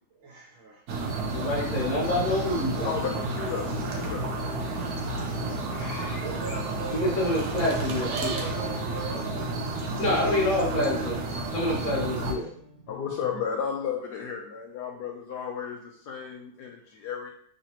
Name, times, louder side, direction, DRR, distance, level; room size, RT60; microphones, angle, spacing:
voice 1, 0.1-1.0 1.3-1.4 2.2-2.9 4.4-7.2 8.3-9.3 12.4-12.5, right 3 dB, 80° right, -5 dB, 1.7 m, -42 dB
sound 1, 0.9-12.3, right 2 dB, 65° right, 1.0 m, -31 dB
voice 2, 1.3-2.9 6.9-8.4 10.0-11.2 11.5-12.5, left 1 dB, 50° left, -5 dB, 1.3 m, -27 dB
sound 2, 1.8-13.4, left 5 dB, 30° right, 1.1 m, -46 dB
voice 3, 2.8-4.2 5.7-6.2 6.5-6.6 12.9-15.8 16.1-17.3, left 7 dB, 75° left, 1 dB, 1.0 m, -33 dB
5.7 x 3.0 x 2.9 m, 0.63 s
omnidirectional pair, 2.2 m